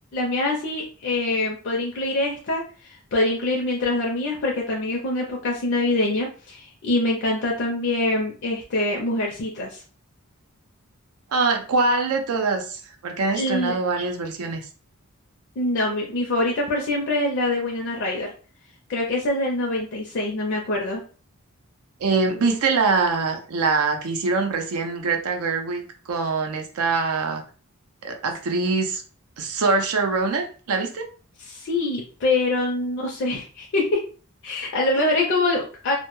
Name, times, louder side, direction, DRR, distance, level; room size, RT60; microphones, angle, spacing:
voice 1, 0.1-9.8 13.3-13.8 15.6-18.3 18.9-21.0 31.4-34.0 34.4-35.9, left 2 dB, 55° left, -1 dB, 0.4 m, -24 dB
voice 2, 11.3-14.7 22.0-25.8 26.1-27.4 28.0-29.0 29.4-31.0, right 4 dB, 75° right, 5 dB, 0.5 m, -23 dB
2.1 x 2.1 x 3.0 m, 0.39 s
head